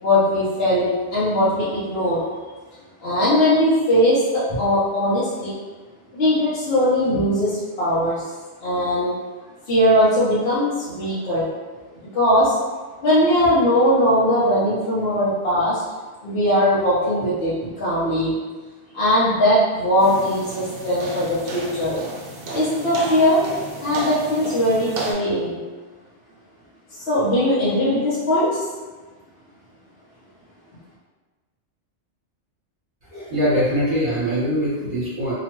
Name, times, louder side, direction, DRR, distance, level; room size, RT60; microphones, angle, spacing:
voice 1, 0.0-2.2 3.0-5.5 6.1-8.2 8.6-9.1 9.7-11.5 12.1-12.5 13.0-15.8 16.2-18.4 18.9-22.0 22.5-23.4 23.8-25.6 27.1-28.6, left 1 dB, 60° left, -10 dB, 0.9 m, -20 dB
sound 1, 20.0-25.1, right 3 dB, 85° right, 0.9 m, -33 dB
voice 2, 33.1-35.3, equal, 45° right, -11 dB, 1.1 m, -22 dB
2.9 x 2.2 x 2.9 m, 1.3 s
omnidirectional pair, 1.2 m